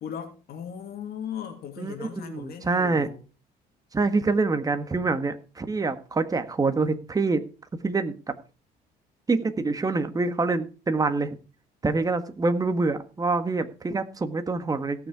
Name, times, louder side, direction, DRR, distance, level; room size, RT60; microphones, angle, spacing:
voice 1, 0.0-3.2, left 8 dB, 65° left, 2.6 m, -37 dB
voice 2, 1.8-3.1 3.9-7.4 7.8-8.1 9.3-11.4 11.8-15.1, right 3 dB, 20° right, 1.6 m, -26 dB
17.0 x 6.8 x 4.8 m
cardioid pair, 110°, 17 cm